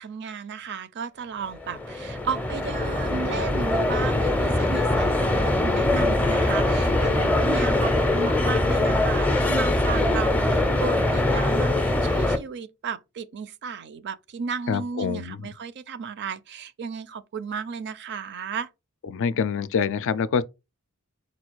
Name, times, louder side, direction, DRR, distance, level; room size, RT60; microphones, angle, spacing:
voice 1, 0.0-18.7, right 6 dB, 50° right, 0.4 m, -34 dB
sound 1, 1.5-12.4, left 2 dB, 5° left, 0.5 m, -22 dB
voice 2, 14.7-15.4 19.0-20.4, left 6 dB, 60° left, 0.4 m, -25 dB
4.2 x 2.3 x 4.5 m
head